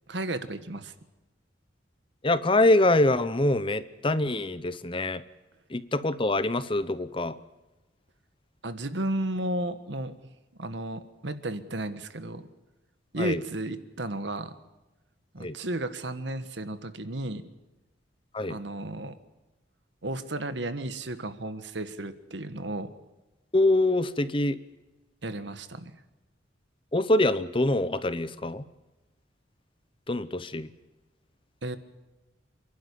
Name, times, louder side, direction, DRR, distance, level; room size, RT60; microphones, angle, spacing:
voice 1, 0.1-0.9 8.6-10.1 10.6-12.5 13.1-14.5 15.3-17.4 18.4-19.1 20.0-22.9 25.2-25.9 31.6-31.8, right 1 dB, 65° right, 11 dB, 1.5 m, -33 dB
voice 2, 2.2-5.2 5.7-7.4 13.2-13.4 15.4-15.6 18.3-18.6 23.5-24.6 26.9-28.6 30.1-30.7, left 2 dB, 25° left, 14 dB, 0.8 m, -24 dB
28.0 x 11.5 x 9.9 m, 1.1 s
head